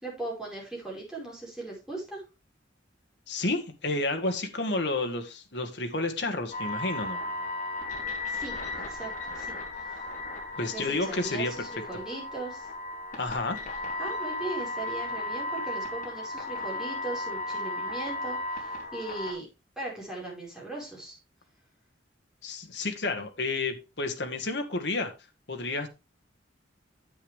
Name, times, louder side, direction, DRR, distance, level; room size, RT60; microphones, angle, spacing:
voice 1, 0.0-2.2 8.1-8.6 8.9-10.0 10.7-12.7 14.0-19.5 19.8-21.2, right 2 dB, 5° right, -4 dB, 4.9 m, -38 dB
voice 2, 3.3-7.2 10.6-11.7 13.2-13.6 22.4-25.1 25.5-25.9, left 2 dB, 60° left, 4 dB, 1.8 m, -30 dB
sound 1, 6.5-19.3, left 2 dB, 40° left, 3.2 m, -35 dB
9.9 x 8.1 x 3.4 m, 0.27 s
head